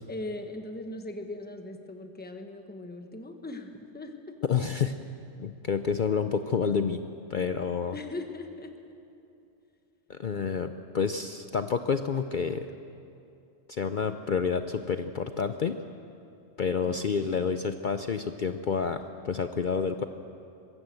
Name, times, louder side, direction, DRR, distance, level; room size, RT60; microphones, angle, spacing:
voice 1, 0.0-4.4 7.9-8.7 16.8-17.2, left 2 dB, 10° left, 5 dB, 1.2 m, -39 dB
voice 2, 4.4-5.0 5.4-7.0 7.3-8.0 10.1-12.7 13.7-15.8 16.6-20.0, left 6 dB, 50° left, 8 dB, 0.6 m, -29 dB
22.0 x 16.0 x 7.8 m, 2.7 s
omnidirectional pair, 1.3 m